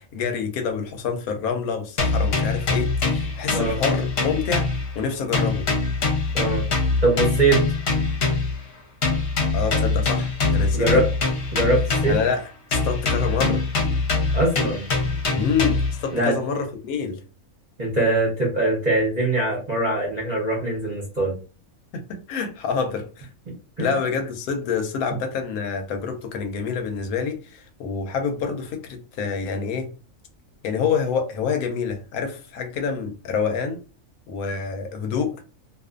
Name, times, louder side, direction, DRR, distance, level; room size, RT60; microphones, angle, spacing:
voice 1, 0.0-4.7 5.0-5.7 9.5-11.0 12.1-13.6 15.3-17.2 21.9-23.3 23.8-29.9 30.6-33.8 34.3-35.4, left 6 dB, 80° left, 1.0 m, -27 dB
sound 1, 2.0-5.1 5.3-8.6 9.0-12.4 12.7-16.0, left 3 dB, 50° left, 0.9 m, -23 dB
voice 2, 7.0-7.6 10.7-11.1 11.5-12.2 14.3-14.8 16.1-16.4 17.8-21.4 23.8-23.9, right 2 dB, 40° right, 0.7 m, -22 dB
2.4 x 2.4 x 2.4 m
omnidirectional pair, 1.5 m